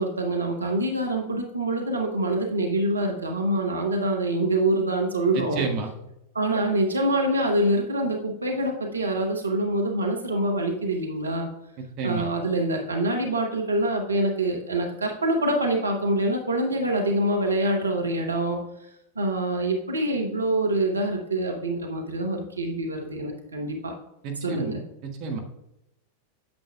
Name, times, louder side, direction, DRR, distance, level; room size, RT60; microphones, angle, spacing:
voice 1, 0.0-5.7 6.3-11.5 12.0-18.6 19.2-23.9 24.4-24.8, right 1 dB, 75° right, 2 dB, 1.0 m, -25 dB
voice 2, 5.3-5.9 12.0-12.3 24.2-24.7 25.0-25.4, right 4 dB, 40° right, 3 dB, 1.2 m, -30 dB
8.8 x 7.0 x 2.3 m, 0.87 s
figure-of-eight pair, 90°, 0 cm